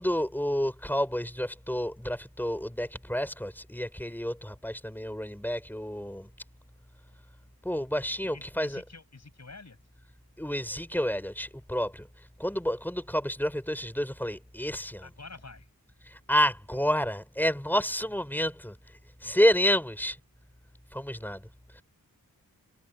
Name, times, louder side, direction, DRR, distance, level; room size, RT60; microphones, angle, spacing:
voice 1, 0.0-6.3 7.6-8.8 10.4-12.1 12.4-15.1 16.0-18.8 19.2-20.2 20.9-21.5 21.7-21.8, equal, 5° left, 4.6 m, -29 dB
voice 2, 8.3-9.8 15.0-15.7 19.2-19.4, left 3 dB, 45° left, 7.9 m, -48 dB
wide cardioid pair, 90°, 36 cm